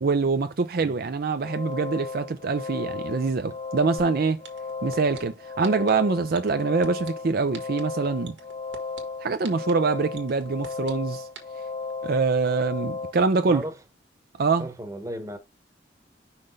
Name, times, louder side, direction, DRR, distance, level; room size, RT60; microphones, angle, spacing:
voice 1, 0.0-4.4 4.8-8.4 9.2-11.3 12.0-13.6 14.4-14.7, right 4 dB, 55° right, 0.5 m, -24 dB
sound 1, 1.4-13.1, left 4 dB, 35° left, 1.1 m, -35 dB
sound 2, 4.0-4.1 4.4-5.2 5.6-5.9 6.3-7.1 7.5-7.8 8.2-9.0 9.4-9.7 10.1-10.9 11.3-11.4, right 5 dB, 80° right, 1.8 m, -41 dB
voice 2, 13.5-13.8 14.6-15.4, right 1 dB, 20° right, 1.1 m, -34 dB
5.8 x 3.2 x 5.4 m
head